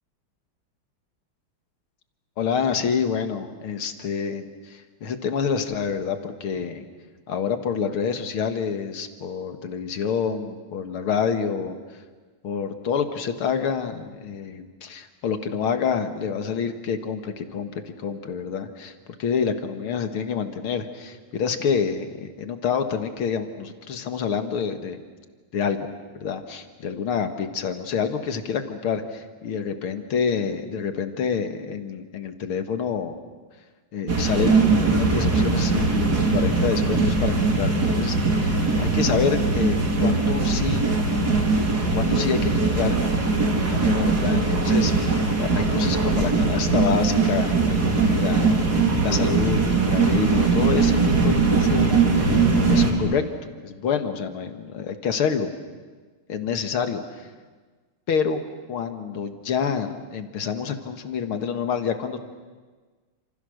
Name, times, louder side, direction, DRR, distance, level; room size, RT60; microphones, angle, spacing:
voice 1, 2.4-6.9 7.3-11.8 12.4-18.9 19.2-25.0 25.5-25.8 26.2-33.2 33.9-40.9 41.9-43.3 43.7-48.8 49.0-52.0 52.7-55.5 56.3-57.3 58.1-58.4 58.7-62.2, left 6 dB, 85° left, 7 dB, 2.5 m, -27 dB
sound 1, 34.1-52.9, right 4 dB, 50° right, 3.7 m, -21 dB
30.0 x 27.5 x 6.6 m, 1.4 s
omnidirectional pair, 2.3 m